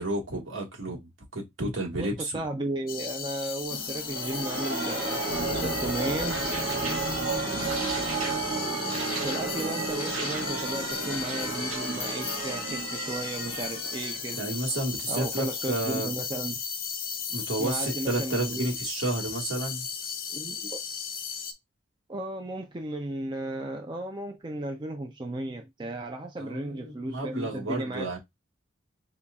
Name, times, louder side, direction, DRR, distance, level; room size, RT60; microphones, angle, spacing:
voice 1, 0.0-2.4 7.2-7.6 14.4-16.1 17.3-19.9 26.4-28.2, right 2 dB, 70° right, 1.5 m, -31 dB
voice 2, 2.0-6.4 9.2-14.4 15.1-16.5 17.6-18.7 20.3-20.8 22.1-28.2, right 1 dB, 20° right, 0.4 m, -34 dB
sound 1, 2.9-21.5, left 6 dB, 45° left, 0.6 m, -36 dB
sound 2, 3.7-15.2, right 3 dB, 85° right, 1.5 m, -32 dB
5.5 x 2.3 x 2.3 m
head